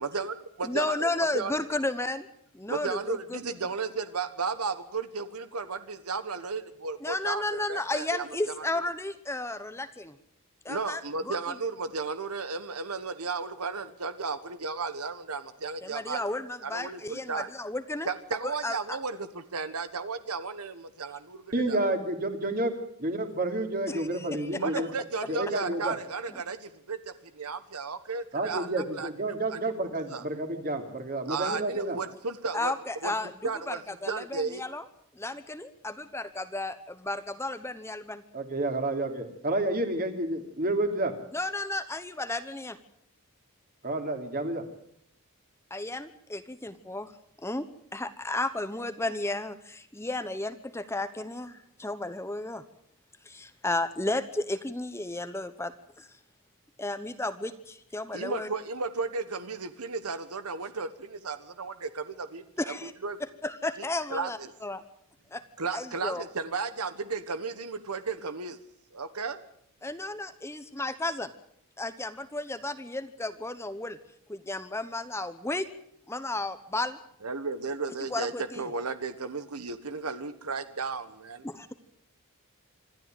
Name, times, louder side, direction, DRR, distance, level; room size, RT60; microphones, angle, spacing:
voice 1, 0.0-1.1 1.3-1.5 2.7-8.2 8.6-8.8 10.7-16.2 16.6-17.5 18.1-21.8 24.6-29.1 29.5-29.6 30.1-30.2 31.3-32.7 33.0-33.1 33.4-33.8 34.1-34.6 58.1-62.4 62.8-63.2 64.1-64.5 65.6-68.6 68.9-69.4 77.2-81.5, right 4 dB, 80° right, 12 dB, 1.3 m, -34 dB
voice 2, 0.6-2.3 2.5-3.4 7.0-10.2 10.6-11.4 15.8-18.1 18.4-19.0 23.9-24.6 26.3-26.4 32.5-33.3 33.7-34.8 35.2-36.7 37.1-38.2 41.3-42.8 45.7-47.1 47.4-47.6 47.9-52.6 53.2-56.2 56.8-58.5 62.6-62.9 63.4-64.8 65.3-65.4 65.7-66.2 69.8-71.3 71.8-74.0 74.3-75.7 76.1-77.0 78.1-78.7 81.4-81.7, left 2 dB, 10° left, 11 dB, 1.0 m, -33 dB
voice 3, 21.5-22.7 23.0-24.9 25.3-26.0 28.3-32.0 38.3-41.1 43.8-44.6, right 2 dB, 40° right, 5 dB, 3.0 m, -30 dB
26.0 x 13.0 x 9.2 m, 0.70 s
head